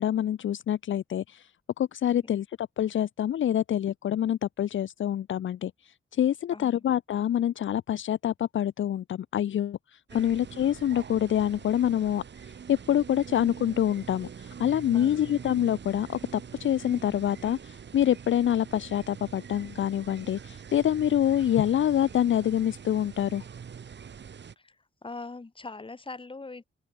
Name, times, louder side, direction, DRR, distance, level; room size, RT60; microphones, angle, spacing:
voice 1, 0.0-1.5 1.8-12.2 12.7-23.4, left 10 dB, 70° left, 0.4 m, -26 dB
voice 2, 6.5-6.8 10.1-10.4 14.9-15.3 24.6-26.6, left 3 dB, 25° left, 2.2 m, -42 dB
sound 1, 10.1-24.5, right 7 dB, 60° right, 1.5 m, -44 dB
open air
wide cardioid pair, 150°, 21 cm